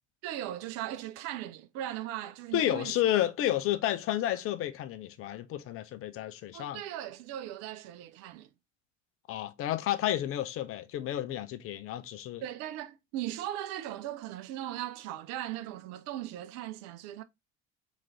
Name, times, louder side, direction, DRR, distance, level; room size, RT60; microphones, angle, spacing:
voice 1, 0.2-3.0 6.5-8.5 12.4-17.2, right 12 dB, 45° right, 0.5 m, -38 dB
voice 2, 2.5-6.8 9.3-12.4, left 12 dB, 40° left, 0.6 m, -31 dB
3.8 x 3.0 x 4.1 m
figure-of-eight pair, 65°, 36 cm